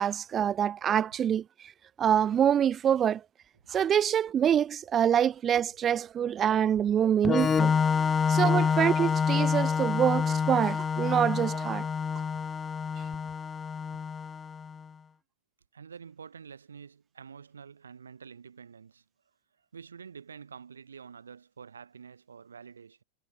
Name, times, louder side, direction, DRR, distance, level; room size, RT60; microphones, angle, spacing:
voice 1, 0.0-1.4 2.0-3.2 3.7-7.8 8.3-11.8, right 9 dB, 25° right, 0.8 m, -25 dB
Organ, 7.2-14.8, left 6 dB, 20° left, 1.4 m, -27 dB
voice 2, 15.7-19.0 19.6-23.0, right 6 dB, 70° right, 6.3 m, -48 dB
figure-of-eight pair, 90°, 0 cm